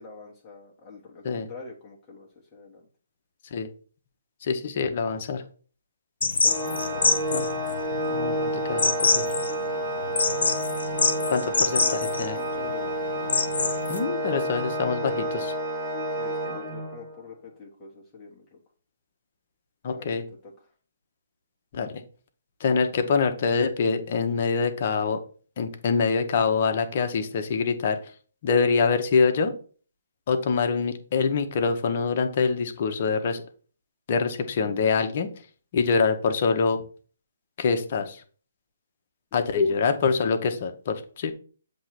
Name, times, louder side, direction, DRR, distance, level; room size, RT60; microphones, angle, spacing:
voice 1, 0.0-2.9 6.7-7.8 11.5-13.0 16.1-18.6 19.8-20.7 39.3-39.9, left 3 dB, 25° left, -3 dB, 1.3 m, -45 dB
voice 2, 4.4-5.4 7.3-7.4 8.1-9.2 11.3-12.4 13.9-15.5 19.8-20.2 21.7-22.0 22.6-25.2 25.6-28.0 28.4-29.5 30.3-33.4 34.1-35.3 35.7-36.8 37.6-38.2 39.3-41.3, left 5 dB, 45° left, 6 dB, 1.1 m, -25 dB
sound 1, 6.2-14.0, left 4 dB, 70° left, 1.1 m, -26 dB
Organ, 6.4-17.2, right 1 dB, 30° right, 1.5 m, -30 dB
7.6 x 3.1 x 5.9 m, 0.41 s
hypercardioid pair, 145°, 0 cm